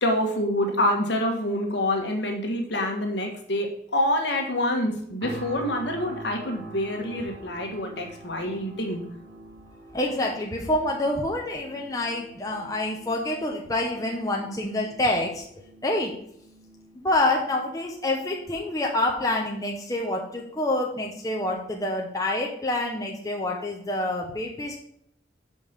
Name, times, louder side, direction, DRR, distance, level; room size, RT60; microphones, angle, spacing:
voice 1, 0.0-9.0, left 1 dB, 65° left, 2 dB, 1.5 m, -26 dB
sound 1, 5.2-20.2 20.7-20.9, right 2 dB, 90° right, 2.7 m, -46 dB
voice 2, 9.9-15.4 15.8-16.1 17.0-24.8, left 1 dB, 20° left, 0 dB, 0.8 m, -27 dB
5.6 x 5.3 x 6.5 m, 0.69 s
head